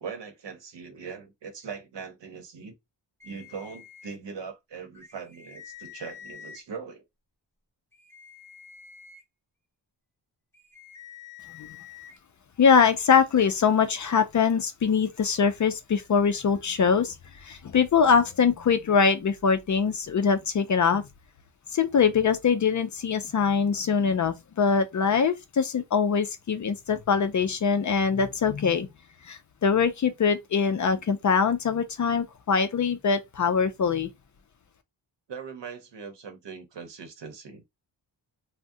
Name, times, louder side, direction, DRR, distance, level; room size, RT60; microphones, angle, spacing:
voice 1, 0.0-2.7 3.2-7.1 35.3-37.6, right 6 dB, 70° right, 0.9 m, -40 dB
sound 1, 3.2-4.2 4.9-6.6 7.9-9.2 10.5-12.2, left 8 dB, 5° left, 1.0 m, -47 dB
voice 2, 12.6-17.1 17.4-21.1 21.7-28.9 29.2-34.1, left 6 dB, 45° left, 0.4 m, -23 dB
3.5 x 2.1 x 2.6 m
wide cardioid pair, 115°, 44 cm